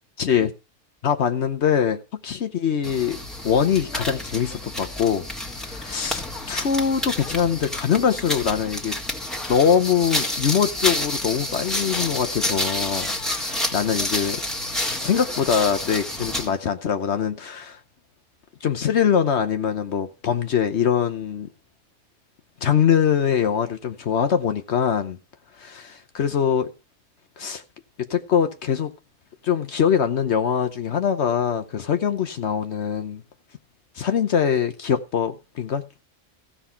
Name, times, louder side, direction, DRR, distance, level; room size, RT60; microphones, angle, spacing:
voice 1, 0.2-0.5 1.0-3.2 3.4-5.2 5.6-6.2 6.5-9.0 9.5-14.4 15.0-17.8 18.6-21.5 22.6-25.2 25.6-26.7 27.4-27.6 28.1-28.9 29.4-33.2 34.0-35.8, left 8 dB, 65° left, 1.1 m, -23 dB
sound 1, 2.8-16.6, left 1 dB, ahead, 1.7 m, -29 dB
15.0 x 5.7 x 5.7 m
omnidirectional pair, 1.3 m